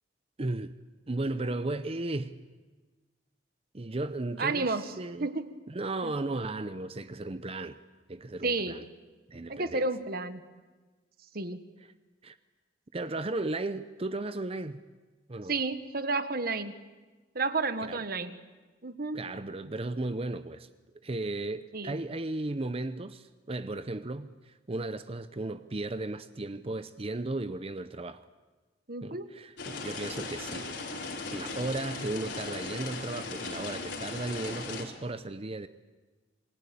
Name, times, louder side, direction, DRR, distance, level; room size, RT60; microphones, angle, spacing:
voice 1, 0.4-0.7 1.1-2.4 3.7-5.3 5.7-7.8 8.1-8.8 9.3-9.8 12.2-12.4 12.9-14.8 15.3-15.5 17.8-18.0 19.1-20.7 21.0-28.3 29.0-30.7 31.3-35.7, right 2 dB, 30° right, 0.7 m, -35 dB
voice 2, 4.4-4.8 5.2-5.5 6.0-6.1 8.4-8.8 9.5-10.4 11.3-11.6 15.5-16.7 17.3-18.4 18.8-19.3 21.7-22.0 28.9-29.3, right 3 dB, 55° right, 1.4 m, -31 dB
sound 1, 29.6-34.8, left 3 dB, 70° left, 4.1 m, -38 dB
27.5 x 20.0 x 8.5 m
head